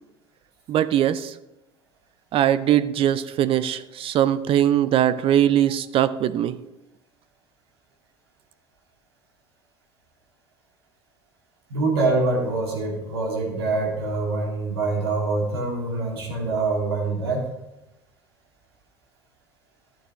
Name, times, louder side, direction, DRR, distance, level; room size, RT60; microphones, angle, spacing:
voice 1, 0.7-1.3 2.3-6.6, right 11 dB, 45° right, 14 dB, 0.5 m, -21 dB
voice 2, 11.7-17.4, right 3 dB, 85° right, -1 dB, 2.4 m, -25 dB
11.5 x 8.7 x 3.1 m, 0.96 s
hypercardioid pair, 75°, 13 cm